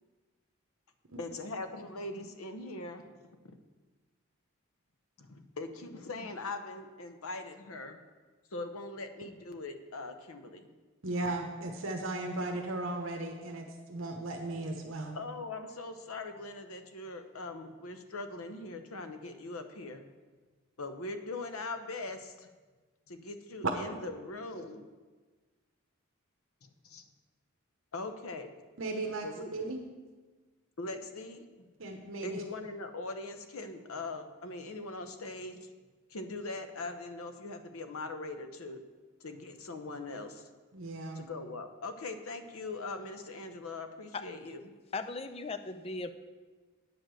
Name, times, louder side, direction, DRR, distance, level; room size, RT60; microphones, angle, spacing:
voice 1, 1.2-3.2 3.4-3.6 5.2-8.0 8.5-10.7 15.1-20.0 20.8-22.5 23.1-24.9 26.8-27.1 27.9-28.5 29.2-29.5 30.8-31.7 32.2-35.7 36.1-38.8 39.2-40.4 41.1-44.6, left 2 dB, 85° left, 8 dB, 0.9 m, -41 dB
voice 2, 11.0-15.2 28.8-29.3 29.5-29.8 31.8-32.4 40.7-41.2, right 2 dB, 70° right, 2 dB, 1.0 m, -36 dB
voice 3, 44.9-46.1, left 3 dB, 25° left, 10 dB, 0.4 m, -37 dB
9.2 x 5.2 x 7.6 m, 1.3 s
head